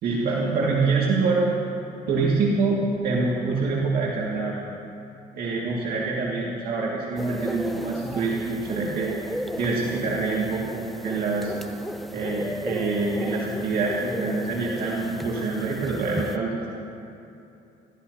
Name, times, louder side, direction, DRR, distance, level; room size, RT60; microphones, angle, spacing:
voice 1, 0.0-1.5 2.1-4.6 5.4-9.1 9.6-11.5 12.1-16.5, right 3 dB, 60° right, -4 dB, 2.1 m, -25 dB
sound 1, 7.2-16.4, equal, ahead, 0.5 m, -36 dB
28.0 x 13.5 x 2.8 m, 2.8 s
cardioid pair, 110°, 17 cm